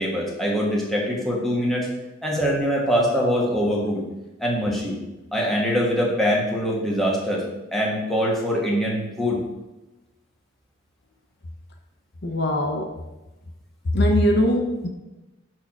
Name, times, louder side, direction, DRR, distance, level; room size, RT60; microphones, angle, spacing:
voice 1, 0.0-1.9 2.2-4.0 4.4-5.0 5.3-7.4 7.7-9.4, equal, ahead, -4 dB, 1.2 m, -23 dB
voice 2, 12.2-12.9 13.8-14.9, left 1 dB, 55° left, 3 dB, 0.7 m, -21 dB
4.6 x 4.5 x 5.8 m, 1.0 s
head